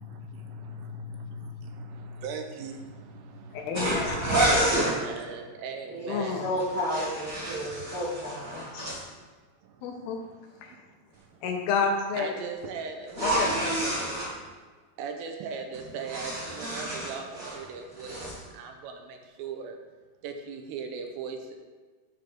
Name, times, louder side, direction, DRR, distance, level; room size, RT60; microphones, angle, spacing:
voice 1, 0.0-6.5 7.7-7.9 8.8-9.2 9.6-10.3 10.6-10.8 11.1-11.4 12.2-13.2 15.0-19.8 20.2-21.6, right 4 dB, 80° right, 4 dB, 2.2 m, -39 dB
voice 2, 3.5-4.3 4.7-4.9 6.1-6.5 8.5-9.0 9.8-10.2 10.6-10.8 11.4-12.4 13.2-14.1, left 5 dB, 80° left, 3 dB, 2.3 m, -31 dB
sound 1, 3.7-4.9 6.6-9.0 13.1-14.3 15.7-17.6 17.9-18.4, right 1 dB, 40° right, 1.1 m, -29 dB
voice 3, 5.9-8.5, equal, 65° right, -8 dB, 1.3 m, -32 dB
7.7 x 3.4 x 5.9 m, 1.4 s
omnidirectional pair, 4.7 m